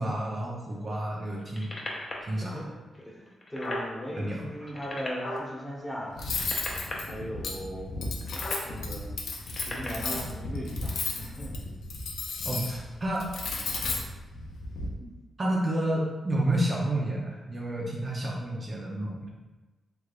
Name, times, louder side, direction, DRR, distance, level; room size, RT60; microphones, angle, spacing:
voice 1, 0.0-1.7 2.2-2.6 4.2-4.7 12.4-13.3 15.0-15.1 15.4-19.3, right 1 dB, 40° right, -4 dB, 0.6 m, -30 dB
sound 1, 1.4-2.3 3.0-3.1 3.3-3.9 4.6-5.5 6.2-6.9 8.2-8.6 9.4-10.2 11.0-11.1, left 1 dB, 40° left, 0.7 m, -36 dB
voice 2, 2.4-6.2 7.0-7.9 8.6-9.1 9.5-11.5, equal, 10° left, -5 dB, 1.0 m, -38 dB
Cutlery silverware, 6.2-14.9, left 3 dB, 80° left, 0.5 m, -34 dB
3.3 x 3.1 x 2.4 m, 1.2 s
cardioid pair, 70°, 0 cm